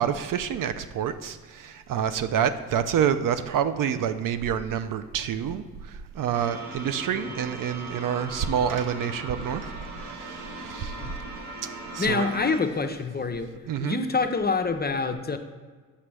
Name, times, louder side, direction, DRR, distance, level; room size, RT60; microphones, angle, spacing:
voice 1, 0.0-11.0 11.9-12.3 13.7-14.0, right 8 dB, 55° right, 11 dB, 0.4 m, -28 dB
sound 1, 6.3-12.6, right 2 dB, 70° right, 1.1 m, -39 dB
voice 2, 12.0-15.4, left 4 dB, 25° left, 7 dB, 0.5 m, -26 dB
5.9 x 5.7 x 3.3 m, 1.5 s
hypercardioid pair, 40°, 41 cm